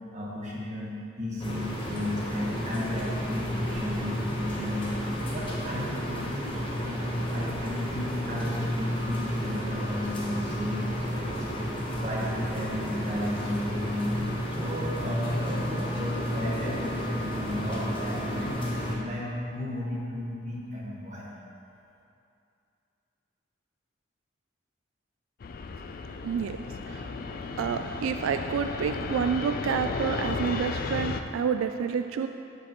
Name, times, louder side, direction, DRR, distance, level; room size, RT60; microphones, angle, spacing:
voice 1, 0.1-4.9 5.3-11.5 12.0-14.0 14.5-21.3, left 1 dB, 35° right, -5 dB, 1.4 m, -34 dB
sound 1, 1.4-18.9, equal, 25° left, 1.1 m, -32 dB
Fixed-wing aircraft airplane, 25.4-31.2, left 4 dB, 45° left, 0.3 m, -34 dB
voice 2, 26.2-32.3, right 6 dB, 90° right, 7 dB, 0.3 m, -29 dB
13.5 x 5.1 x 3.0 m, 2.6 s
head